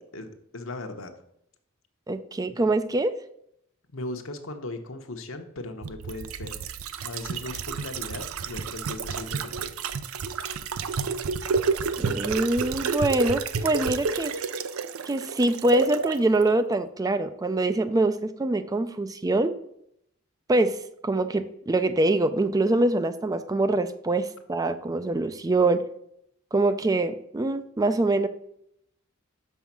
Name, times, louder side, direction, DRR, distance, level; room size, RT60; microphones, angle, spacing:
voice 1, 0.1-1.1 2.5-2.6 3.9-6.6 7.0-9.8, left 2 dB, 65° left, 6 dB, 1.0 m, -38 dB
voice 2, 2.1-3.1 12.0-14.3 15.1-19.5 20.5-20.8 21.0-25.8 26.5-28.3, right 2 dB, 15° right, 10 dB, 0.3 m, -24 dB
sound 1, 5.8-16.2 16.5-16.6, right 5 dB, 85° right, 0.5 m, -30 dB
6.3 x 5.5 x 5.9 m, 0.74 s
head